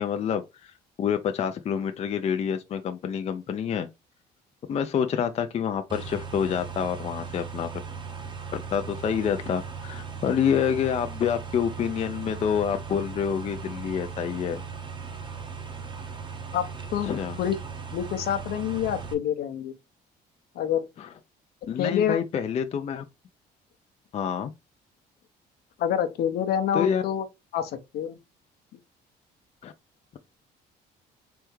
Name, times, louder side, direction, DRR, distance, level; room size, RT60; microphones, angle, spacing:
voice 1, 0.0-3.9 4.7-7.7 8.5-14.6 17.0-17.4 21.0-21.1 21.7-23.0 24.1-24.5 26.7-27.0 29.6-29.7, left 8 dB, 40° left, 0.4 m, -27 dB
sound 1, 5.9-19.1, right 5 dB, 30° right, 0.9 m, -38 dB
voice 2, 17.9-19.7 20.5-20.9 21.8-22.2 25.8-27.3 27.5-28.2, left 9 dB, 70° left, 0.7 m, -27 dB
3.5 x 3.2 x 3.1 m
cardioid pair, 110°, 17 cm